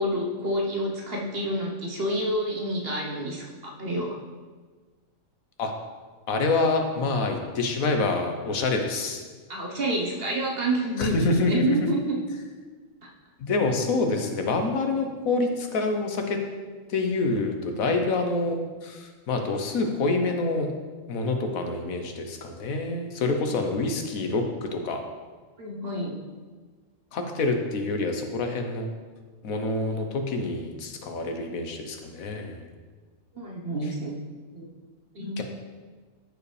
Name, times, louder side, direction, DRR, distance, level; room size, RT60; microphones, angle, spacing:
voice 1, 0.0-4.2 9.5-12.4 23.4-23.6 25.6-26.2 33.3-34.1 34.5-34.7 35.1-35.4, right 1 dB, 45° right, -1 dB, 1.3 m, -28 dB
voice 2, 6.3-9.2 11.0-11.8 13.4-16.4 16.9-20.7 21.1-25.0 27.1-28.9 29.4-32.7 35.4-35.5, left 3 dB, 85° left, 4 dB, 1.4 m, -27 dB
14.0 x 4.9 x 3.3 m, 1.4 s
omnidirectional pair, 1.4 m